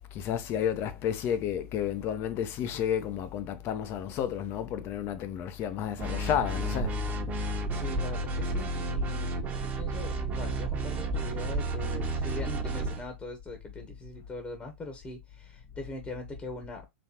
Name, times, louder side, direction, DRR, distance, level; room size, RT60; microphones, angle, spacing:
voice 1, 0.1-6.9, left 9 dB, 35° left, 0.7 m, -31 dB
sound 1, 6.0-13.0, right 1 dB, 25° right, 1.2 m, -31 dB
voice 2, 7.7-9.3 9.6-16.9, left 2 dB, 15° left, 1.1 m, -41 dB
4.1 x 3.1 x 2.9 m
hypercardioid pair, 100°, 7 cm